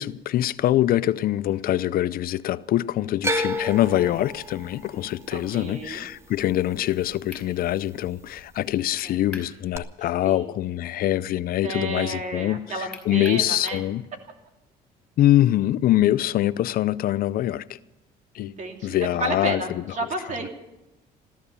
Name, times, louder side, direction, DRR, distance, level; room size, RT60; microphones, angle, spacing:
voice 1, 0.0-14.0 15.2-17.8 18.3-18.5 18.8-19.8, left 13 dB, 60° left, 0.5 m, -24 dB
sound 1, 3.2-7.4 7.7-8.4 9.7-9.8, equal, 15° right, 1.1 m, -31 dB
voice 2, 5.3-6.1 9.0-9.2 10.2-10.4 11.6-13.8 18.4-20.5, right 2 dB, 45° right, 2.7 m, -31 dB
sound 2, 7.3-7.5 9.0-9.5 9.9-10.0 12.9-13.9, left 2 dB, 5° left, 4.8 m, -41 dB
15.0 x 14.0 x 6.9 m
cardioid pair, 110°, 17 cm